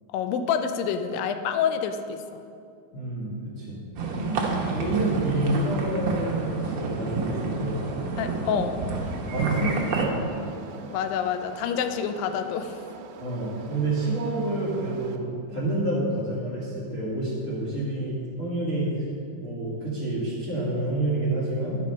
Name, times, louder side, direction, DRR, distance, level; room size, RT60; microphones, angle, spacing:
voice 1, 0.1-2.2 4.1-4.4 8.2-8.9 10.9-12.8, left 7 dB, 80° left, 8 dB, 2.2 m, -27 dB
voice 2, 2.9-3.8 4.6-7.8 9.3-10.4 13.2-18.9 19.4-21.8, right 2 dB, 35° left, -9 dB, 1.2 m, -28 dB
sound 1, 4.0-10.1, right 3 dB, 65° right, 1.7 m, -29 dB
sound 2, 9.0-15.2, right 5 dB, 85° right, 2.4 m, -45 dB
12.0 x 5.7 x 5.3 m, 2.4 s
omnidirectional pair, 4.2 m